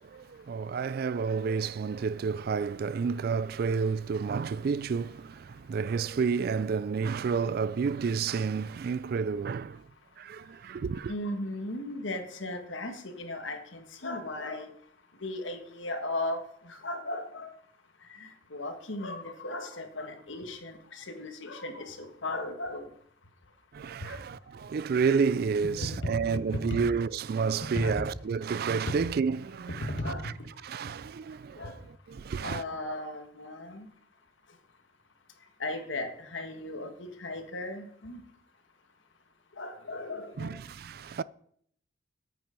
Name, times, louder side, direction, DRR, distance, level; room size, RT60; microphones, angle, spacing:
voice 1, 0.0-9.8 10.2-11.1 23.7-29.9 30.2-30.3 30.6-32.6 40.4-41.2, right 5 dB, 50° right, 0.3 m, -30 dB
voice 2, 11.1-14.7 15.2-17.5 18.2-22.9 24.0-24.2 26.0-26.8 27.6-28.1 28.9-29.0 29.7-30.3 31.6-31.8 32.4-33.9 35.6-38.2 39.6-40.6, left 1 dB, 70° left, 1.6 m, -36 dB
9.3 x 9.1 x 5.2 m
head